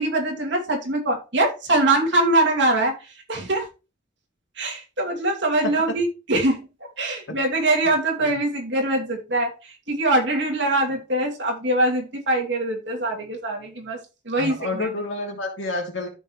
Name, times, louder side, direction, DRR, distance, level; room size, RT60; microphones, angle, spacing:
voice 1, 0.0-2.9 3.3-3.7 4.6-6.6 7.0-14.0 14.2-14.9, right 2 dB, 65° right, -1 dB, 2.8 m, -23 dB
voice 2, 5.6-6.0 7.3-7.4 8.2-8.3 14.4-16.1, left 2 dB, 70° left, 1 dB, 3.1 m, -29 dB
13.5 x 5.4 x 3.2 m, 0.30 s
head